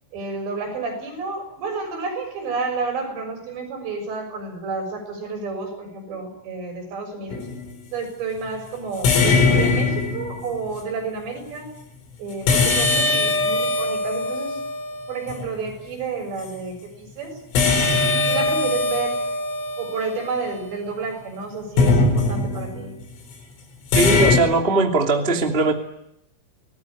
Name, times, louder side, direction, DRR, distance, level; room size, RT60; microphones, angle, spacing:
voice 1, 0.1-7.5 7.9-11.7 12.2-14.6 15.1-17.4 18.3-19.2 19.8-22.9, right 4 dB, 55° right, 4 dB, 8.5 m, -30 dB
sound 1, 7.3-7.6 9.0-10.6 12.5-15.5 17.5-20.9 21.8-22.8 23.9-24.4, left 3 dB, 75° left, 6.7 m, -21 dB
voice 2, 23.9-25.7, right 3 dB, 20° right, 2 dB, 1.5 m, -19 dB
24.5 x 19.5 x 10.0 m, 0.79 s
omnidirectional pair, 5.9 m